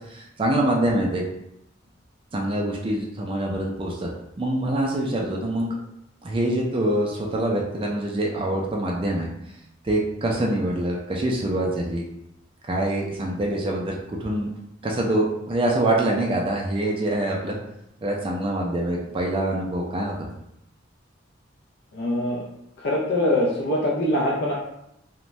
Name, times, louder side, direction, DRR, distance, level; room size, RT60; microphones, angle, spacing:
voice 1, 0.1-1.2 2.3-4.1 4.4-5.8 6.2-9.3 9.8-12.0 12.7-14.5 14.8-17.6 18.0-20.1, right 1 dB, 25° right, -1 dB, 0.3 m, -25 dB
voice 2, 21.9-22.4 22.8-24.5, left 1 dB, 55° left, -4 dB, 0.4 m, -23 dB
2.6 x 2.1 x 3.0 m, 0.82 s
head